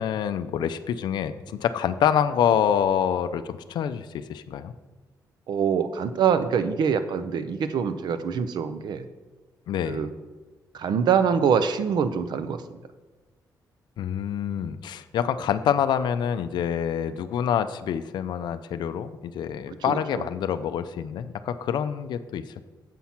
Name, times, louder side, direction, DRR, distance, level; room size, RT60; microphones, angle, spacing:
voice 1, 0.0-4.7 9.7-10.0 14.0-22.7, left 9 dB, 75° left, 10 dB, 0.4 m, -26 dB
voice 2, 5.5-9.1 9.9-10.1 10.7-12.6 19.9-20.2, right 7 dB, 70° right, 11 dB, 0.6 m, -24 dB
7.4 x 5.9 x 5.6 m, 1.3 s
cardioid pair, 130°, 8 cm